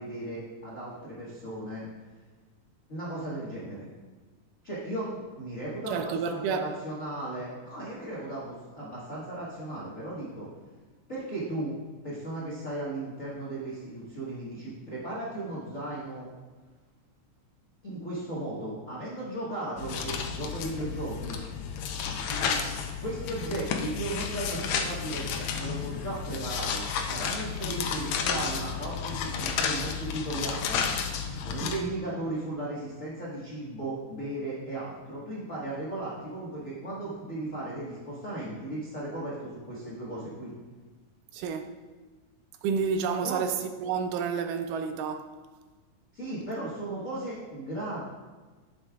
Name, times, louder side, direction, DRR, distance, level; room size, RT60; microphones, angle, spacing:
voice 1, 0.0-1.8 2.9-3.9 4.6-5.1 5.4-10.5 11.1-11.7 12.0-16.3 17.8-21.4 22.3-22.7 23.0-30.9 31.4-40.5 43.2-43.4 46.1-48.0, right 1 dB, 55° left, 0.9 m, -36 dB
voice 2, 5.9-6.7 31.6-31.9 41.3-41.7 42.6-45.3, right 6 dB, 80° right, 2.0 m, -30 dB
sound 1, 19.8-31.8, left 6 dB, 85° left, 1.5 m, -32 dB
11.0 x 7.6 x 2.3 m
omnidirectional pair, 3.9 m